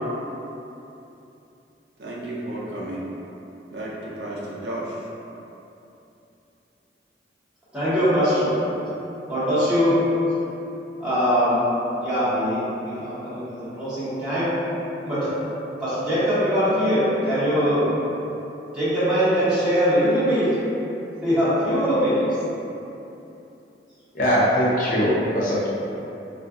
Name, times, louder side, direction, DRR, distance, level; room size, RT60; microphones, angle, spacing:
voice 1, 2.0-3.1 3.7-4.9, right 1 dB, 75° right, -5 dB, 0.5 m, -32 dB
voice 2, 7.7-8.5 9.3-10.0 11.0-11.6 12.0-14.5 15.0-15.3 15.8-17.9 18.7-20.5 21.2-22.3, equal, 5° right, -15 dB, 1.1 m, -22 dB
voice 3, 24.1-25.7, equal, 50° left, -7 dB, 0.5 m, -21 dB
2.4 x 2.3 x 3.6 m, 2.9 s
head